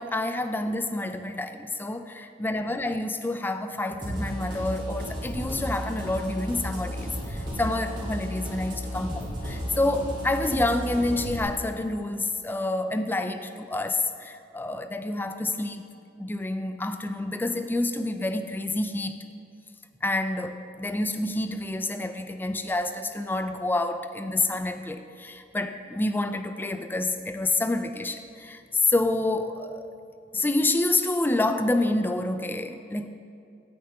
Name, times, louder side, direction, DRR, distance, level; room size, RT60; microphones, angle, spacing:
voice 1, 0.0-15.8 16.2-19.2 20.0-29.9 30.3-33.1, left 2 dB, 10° left, 9 dB, 0.3 m, -28 dB
sound 1, 4.0-11.4, equal, 25° right, 2.2 m, -33 dB
9.0 x 8.8 x 3.8 m, 2.4 s
head